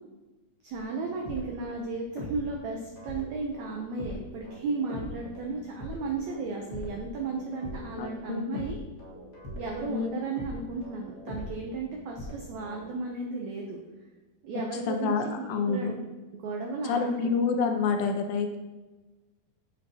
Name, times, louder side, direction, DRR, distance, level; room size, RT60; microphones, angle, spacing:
voice 1, 0.6-8.8 9.6-13.8 14.4-15.9 16.3-17.3, right 3 dB, 85° right, 0 dB, 1.6 m, -34 dB
sound 1, 0.7-2.6 3.0-12.9, left 1 dB, 60° left, 0.9 m, -42 dB
voice 2, 8.0-8.6 9.9-10.2 14.9-15.9 16.8-18.6, left 5 dB, 80° left, 5 dB, 2.2 m, -28 dB
10.0 x 5.6 x 2.8 m, 1.2 s
omnidirectional pair, 4.3 m